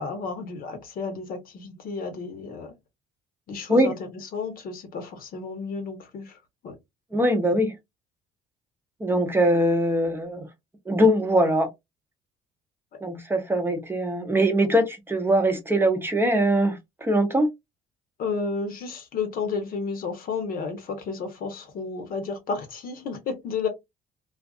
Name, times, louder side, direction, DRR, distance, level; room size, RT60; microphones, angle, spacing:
voice 1, 0.0-2.7 3.5-6.4 6.6-6.8 18.2-23.7, left 4 dB, 60° left, 1.0 m, -32 dB
voice 2, 7.1-7.7 9.0-10.5 10.9-11.7 13.0-17.5, right 1 dB, 15° right, 0.6 m, -22 dB
2.5 x 2.4 x 2.4 m
cardioid pair, 110°, 17 cm